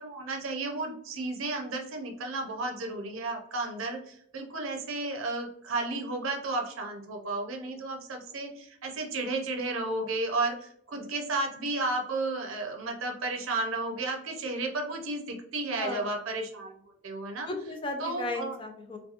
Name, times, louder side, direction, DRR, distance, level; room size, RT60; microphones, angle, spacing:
voice 1, 0.0-16.7 17.0-17.5 18.0-18.6, right 2 dB, 80° right, 2 dB, 0.5 m, -33 dB
voice 2, 15.8-16.1 17.5-19.0, left 2 dB, 25° left, 4 dB, 0.3 m, -35 dB
2.4 x 2.2 x 2.7 m, 0.67 s
head